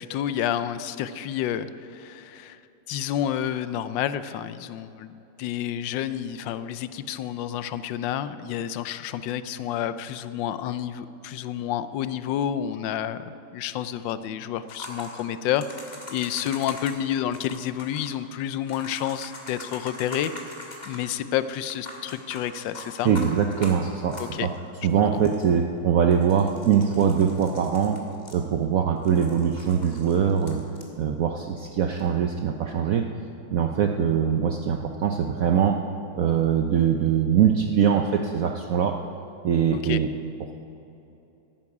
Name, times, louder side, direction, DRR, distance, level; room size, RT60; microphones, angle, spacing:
voice 1, 0.0-2.6 2.9-5.1 5.4-20.3 20.9-23.1 24.2-24.5 24.9-25.2 39.7-40.0, left 10 dB, 75° left, 13 dB, 1.2 m, -29 dB
sound 1, 14.7-17.0 17.3-18.1 18.7-21.1 21.6-24.6 24.9-25.0 25.2-25.6 26.1-28.7 29.0-30.9 32.0-32.1, left 2 dB, 25° left, 1.6 m, -42 dB
voice 2, 23.0-24.5 24.8-28.0 28.3-30.7 31.0-33.1 33.5-35.9 36.2-39.0 39.4-40.1 40.4-40.6, right 8 dB, 80° right, 4 dB, 0.7 m, -22 dB
13.5 x 11.5 x 4.8 m, 3.0 s
omnidirectional pair, 2.2 m